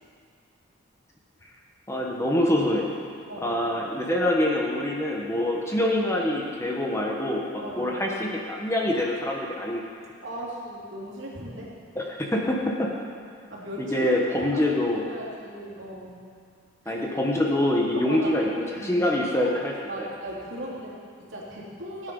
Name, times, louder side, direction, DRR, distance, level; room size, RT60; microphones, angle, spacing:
voice 1, 1.9-2.8 3.4-7.4 7.8-9.8 12.0-12.9 13.8-15.0 16.9-18.5 18.8-19.7 20.0-20.1, left 1 dB, 15° left, -1 dB, 1.1 m, -25 dB
voice 2, 7.6-7.9 10.2-11.7 13.5-14.1 14.4-14.7 15.0-16.2 16.8-17.0 17.4-17.5 17.9-19.0 19.3-19.5 19.9-22.1, right 1 dB, 60° right, -5 dB, 3.1 m, -38 dB
17.5 x 9.2 x 5.4 m, 2.2 s
head